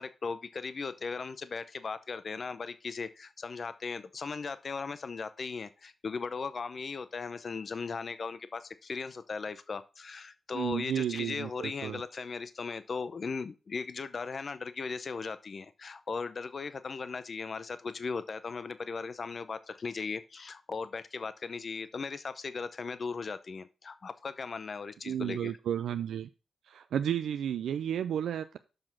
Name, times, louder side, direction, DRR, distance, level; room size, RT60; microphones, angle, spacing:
voice 1, 0.0-25.5, left 4 dB, 55° left, 0.7 m, -38 dB
voice 2, 10.5-12.0 25.1-26.3 26.7-28.6, right 9 dB, 80° right, 0.4 m, -32 dB
6.6 x 5.9 x 6.1 m
supercardioid pair, 50°, 0 cm